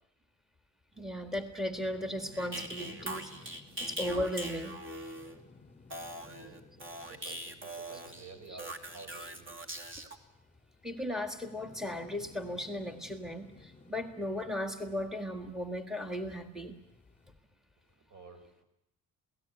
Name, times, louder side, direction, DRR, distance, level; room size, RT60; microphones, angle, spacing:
sound 1, 0.9-17.3, left 3 dB, 20° left, 4.2 m, -58 dB
voice 1, 1.0-4.8 7.2-7.3 8.5-8.6 10.8-16.8, left 1 dB, ahead, 5 dB, 1.8 m, -36 dB
sound 2, 2.3-5.4 5.9-10.2, right 1 dB, 40° right, 2.8 m, -41 dB
voice 2, 6.0-9.5 17.9-18.6, right 4 dB, 65° right, 8 dB, 5.8 m, -52 dB
28.0 x 18.0 x 9.2 m, 0.82 s
cardioid pair, 135°, 32 cm